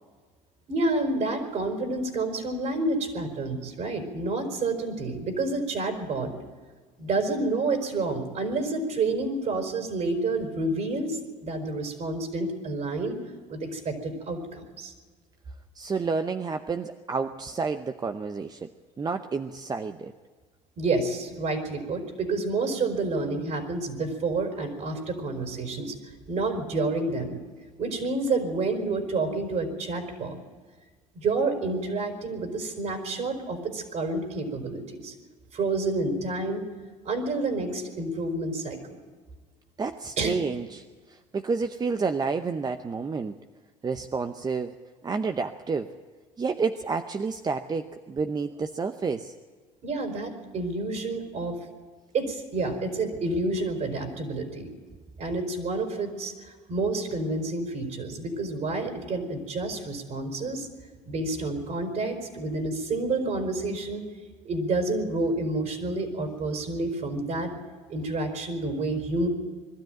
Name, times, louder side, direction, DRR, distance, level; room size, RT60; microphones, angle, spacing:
voice 1, 0.7-6.3 7.0-13.2 13.5-14.9 20.8-27.4 27.8-30.4 31.1-35.1 35.5-36.7 37.0-38.8 40.2-40.4 49.8-51.6 52.1-54.7 55.2-56.3 56.7-60.7 61.0-64.1 64.4-67.5 67.9-69.3, right 3 dB, 50° right, 5 dB, 4.8 m, -29 dB
voice 2, 15.7-18.7 19.0-20.1 39.8-43.4 43.8-44.7 45.0-45.9 46.4-49.3, right 4 dB, 25° right, 8 dB, 0.8 m, -30 dB
22.0 x 13.0 x 9.2 m, 1.5 s
hypercardioid pair, 75°, 15 cm